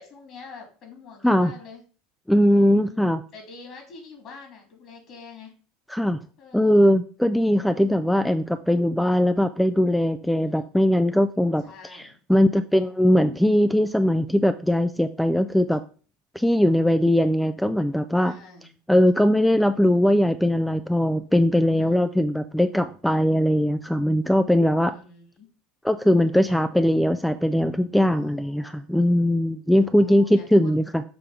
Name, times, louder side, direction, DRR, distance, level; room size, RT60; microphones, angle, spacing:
voice 1, 0.0-1.8 2.7-5.5 6.4-6.8 11.6-12.2 18.2-18.7 21.8-22.1 24.8-25.5 28.1-29.0 30.0-30.7, left 4 dB, 45° left, 2 dB, 3.0 m, -46 dB
voice 2, 2.3-3.2 5.9-6.2 6.5-11.6 11.9-15.8 16.4-18.3 18.9-24.9 25.8-31.0, equal, 5° left, 11 dB, 0.3 m, -20 dB
6.9 x 3.2 x 4.9 m, 0.40 s
hypercardioid pair, 80°, 0 cm